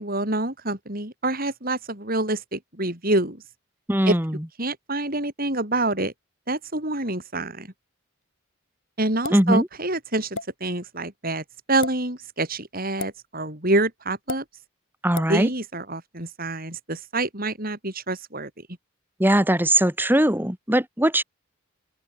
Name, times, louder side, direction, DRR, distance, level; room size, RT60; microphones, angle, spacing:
voice 1, 0.0-3.4 4.1-4.2 4.6-6.1 6.5-7.7 9.0-14.4 15.3-18.5, right 2 dB, 40° right, 7.0 m, -27 dB
voice 2, 3.9-4.4 9.3-9.7 15.0-15.5 19.2-21.2, right 1 dB, 10° right, 2.8 m, -20 dB
sound 1, 9.2-9.5 10.3-10.5 11.7-11.9 13.0-13.2 14.3-14.4 15.1-15.3, left 3 dB, 60° left, 7.8 m, -32 dB
open air
head